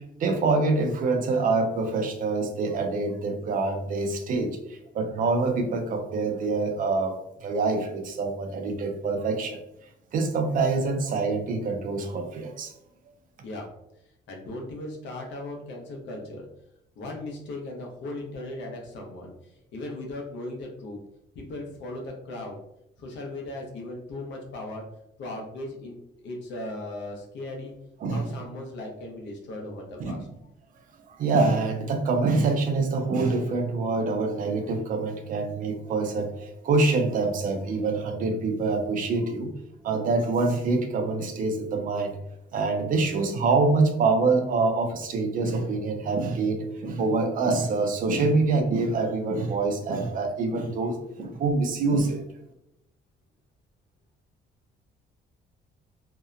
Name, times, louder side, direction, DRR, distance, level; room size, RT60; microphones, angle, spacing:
voice 1, 0.2-9.6 10.1-12.7 28.0-28.4 30.0-30.1 31.1-39.5 39.8-42.2 42.5-52.2, right 3 dB, 50° right, 5 dB, 0.4 m, -25 dB
voice 2, 14.3-16.5 17.0-21.0 21.3-22.6 23.0-24.8 25.2-26.0 26.2-27.7 28.1-30.3, left 2 dB, 80° left, 1 dB, 0.7 m, -37 dB
2.7 x 2.1 x 2.3 m, 0.81 s
cardioid pair, 180°, 18 cm